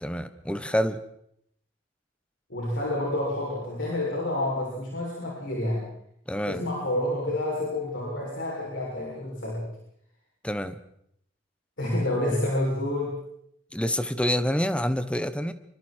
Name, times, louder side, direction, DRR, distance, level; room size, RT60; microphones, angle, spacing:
voice 1, 0.0-1.0 6.3-6.6 10.4-10.8 13.7-15.5, equal, 5° left, 10 dB, 1.3 m, -27 dB
voice 2, 2.5-5.9 6.5-9.7 11.8-13.2, left 1 dB, 65° left, -4 dB, 7.3 m, -29 dB
28.5 x 25.0 x 4.7 m, 0.73 s
head